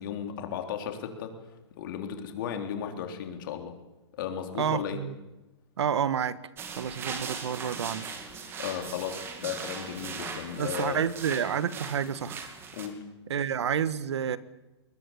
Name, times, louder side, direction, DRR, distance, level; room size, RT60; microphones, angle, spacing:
voice 1, 0.0-1.3 1.8-3.7 4.1-5.0 8.6-11.0 12.7-13.1, left 8 dB, 50° left, 5 dB, 3.7 m, -35 dB
voice 2, 4.6-5.1 5.8-6.4 6.8-8.1 10.6-12.4 13.3-14.4, right 8 dB, 75° right, 16 dB, 1.3 m, -29 dB
sound 1, 6.6-12.9, right 5 dB, 15° right, 2.4 m, -39 dB
21.0 x 20.5 x 8.4 m, 1.0 s
hypercardioid pair, 155°, 14 cm